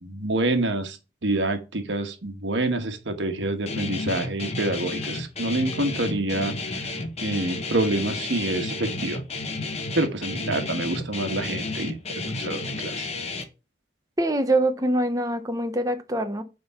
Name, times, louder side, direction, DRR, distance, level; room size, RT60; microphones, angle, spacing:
voice 1, 0.0-6.9 7.2-9.2 10.0-13.1, right 2 dB, 90° right, 1.3 m, -27 dB
Guitar, 3.7-13.4, left 3 dB, 35° left, 1.0 m, -32 dB
voice 2, 14.2-16.4, right 1 dB, 20° right, 0.9 m, -24 dB
9.3 x 3.7 x 5.6 m
head